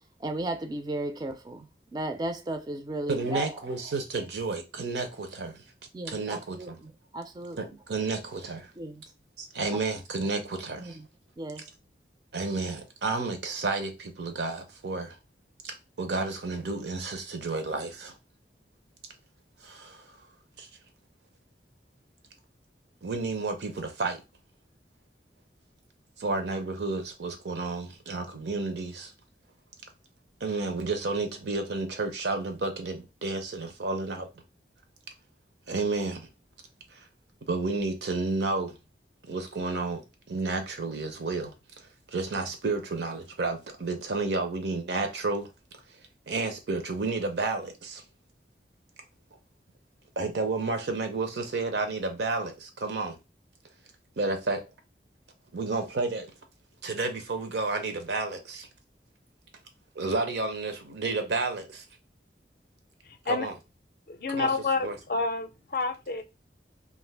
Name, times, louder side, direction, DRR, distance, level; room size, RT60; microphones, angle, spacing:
voice 1, 0.2-3.6 5.9-7.6 8.8-9.0 9.7-9.8 10.8-11.1 11.4-11.6, right 1 dB, 25° right, 0.3 m, -35 dB
voice 2, 3.1-5.6 6.1-6.8 7.6-8.7 9.4-11.0 12.3-15.2 15.6-18.1 19.6-20.2 20.6-20.7 23.0-24.2 26.2-29.1 30.4-34.3 35.7-36.3 36.9-37.0 37.5-38.8 39.2-40.0 40.3-41.5 42.1-45.5 46.3-48.0 50.2-53.2 54.2-54.6 55.5-56.3 56.8-58.7 60.0-61.8 63.3-63.5 64.3-64.5 64.8-65.0, right 3 dB, 80° right, 0.7 m, -31 dB
voice 3, 64.1-66.2, left 3 dB, 55° left, 0.4 m, -29 dB
2.5 x 2.4 x 3.3 m
head